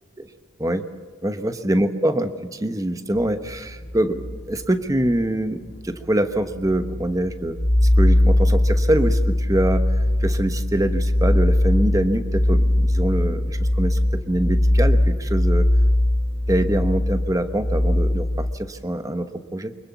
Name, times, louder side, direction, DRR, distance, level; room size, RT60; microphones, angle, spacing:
voice 1, 1.2-7.6 8.0-15.7 16.5-19.7, right 1 dB, 15° right, 9 dB, 1.1 m, -24 dB
sound 1, 3.1-5.2 5.7-5.8 6.4-18.5, left 1 dB, 45° left, 3.6 m, -20 dB
24.5 x 22.5 x 7.2 m, 1.5 s
head